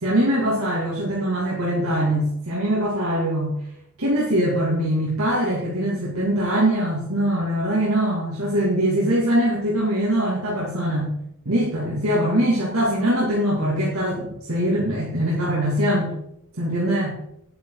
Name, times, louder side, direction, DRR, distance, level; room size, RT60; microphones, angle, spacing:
voice 1, 0.0-3.6 4.0-11.1 11.4-16.1 16.6-17.2, right 1 dB, 85° right, -6 dB, 2.6 m, -22 dB
10.0 x 9.5 x 4.0 m, 0.77 s
head